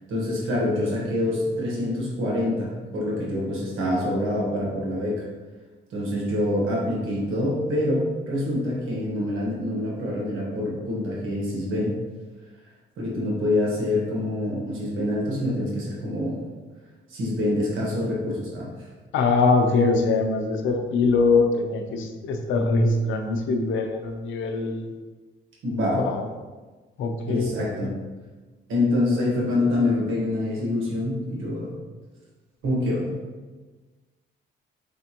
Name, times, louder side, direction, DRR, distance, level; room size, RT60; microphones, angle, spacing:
voice 1, 0.1-5.2 5.9-11.9 13.0-16.4 17.1-18.7 25.6-26.0 27.3-27.9 28.7-31.8 32.6-33.1, left 1 dB, 85° right, -4 dB, 1.3 m, -26 dB
voice 2, 19.1-24.9 25.9-26.3 27.0-27.9, left 3 dB, 80° left, 4 dB, 0.6 m, -23 dB
4.2 x 3.4 x 2.8 m, 1.3 s
cardioid pair, 90°, 20 cm